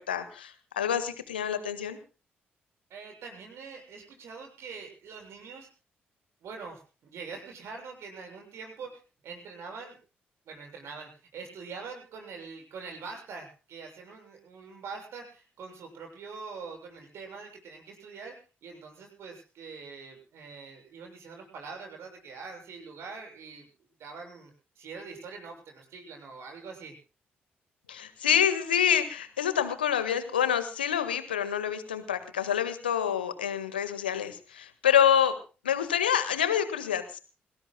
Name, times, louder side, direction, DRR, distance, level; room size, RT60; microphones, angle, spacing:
voice 1, 0.0-2.0 27.9-35.3 35.6-37.2, left 9 dB, 80° left, 11 dB, 1.6 m, -27 dB
voice 2, 2.9-5.7 6.4-10.0 10.5-18.4 18.6-23.7 24.0-26.9, right 4 dB, 55° right, 3 dB, 7.1 m, -44 dB
28.0 x 19.0 x 2.2 m, 0.36 s
figure-of-eight pair, 40°, 5 cm